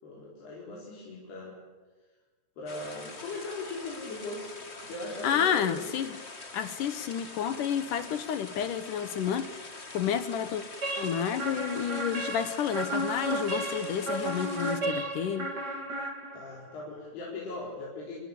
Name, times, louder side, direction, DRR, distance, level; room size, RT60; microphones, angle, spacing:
voice 1, 0.0-1.6 2.6-4.6 4.8-5.9 16.3-18.2, left 2 dB, 90° left, -4 dB, 7.2 m, -39 dB
sound 1, 2.7-14.8, left 3 dB, 25° left, 1.5 m, -45 dB
voice 2, 5.2-6.1 6.5-9.7 9.9-10.6 11.0-15.5, left 8 dB, 65° left, 11 dB, 2.4 m, -30 dB
sound 2, 10.8-16.7, right 1 dB, 30° right, 3.0 m, -33 dB
30.0 x 22.0 x 8.5 m, 1.3 s
omnidirectional pair, 4.5 m